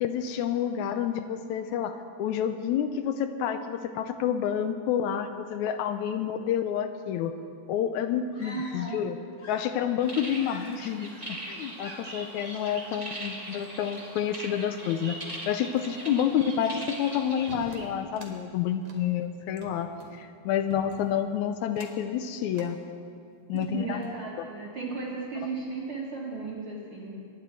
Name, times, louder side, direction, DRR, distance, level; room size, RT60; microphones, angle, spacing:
voice 1, 0.0-7.4 7.7-9.2 9.5-15.2 15.5-19.9 20.2-22.8 23.5-24.0, left 9 dB, 80° left, 9 dB, 1.9 m, -29 dB
sound 1, 8.3-9.1 9.3-10.1 10.4-10.9, left 3 dB, 45° left, 1.2 m, -49 dB
voice 2, 8.4-9.0 23.5-27.1, right 4 dB, 50° right, -6 dB, 2.2 m, -35 dB
sound 2, 10.0-17.8, right 1 dB, 20° right, 1.0 m, -40 dB
sound 3, 17.5-18.4 18.8-20.2 20.7-21.2 21.7-22.1 22.5-22.7 23.3-24.2, right 3 dB, 75° right, 3.1 m, -48 dB
23.5 x 10.0 x 4.5 m, 2.4 s
omnidirectional pair, 3.6 m